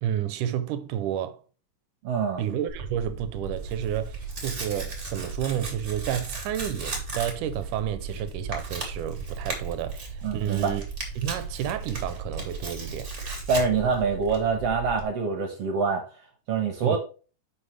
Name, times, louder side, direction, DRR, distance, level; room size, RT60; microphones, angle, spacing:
voice 1, 0.0-1.4 2.4-10.9 11.2-13.1 16.8-17.0, right 10 dB, 80° right, 2.1 m, -30 dB
voice 2, 2.0-2.4 10.2-10.7 13.5-16.0 16.5-17.0, right 5 dB, 60° right, 2.0 m, -25 dB
Tearing, 2.7-15.0, right 4 dB, 25° right, 1.9 m, -35 dB
9.7 x 6.0 x 3.2 m
omnidirectional pair, 3.8 m